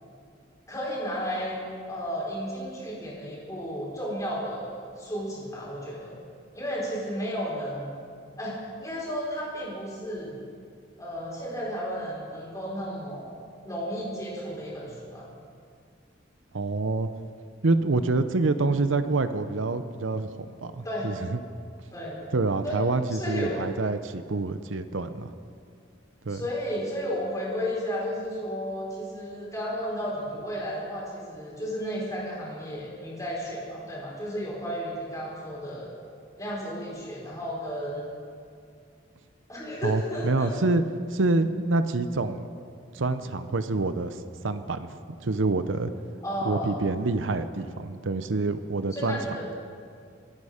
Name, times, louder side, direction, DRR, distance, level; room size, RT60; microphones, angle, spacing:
voice 1, 0.7-1.6 1.9-6.2 6.5-8.0 8.4-10.4 11.0-13.4 13.6-15.2 20.8-21.1 21.9-22.3 22.6-22.8 23.1-23.6 26.3-35.9 36.4-38.1 39.5-40.6 46.2-46.8 48.9-49.5, equal, 15° left, -5 dB, 4.4 m, -33 dB
voice 2, 16.5-17.1 17.6-20.3 20.6-21.4 22.3-25.3 26.3-26.4 39.8-40.8 41.1-42.5 42.9-45.9 46.4-49.2, right 3 dB, 80° right, 11 dB, 0.7 m, -27 dB
27.5 x 9.7 x 5.0 m, 2.3 s
head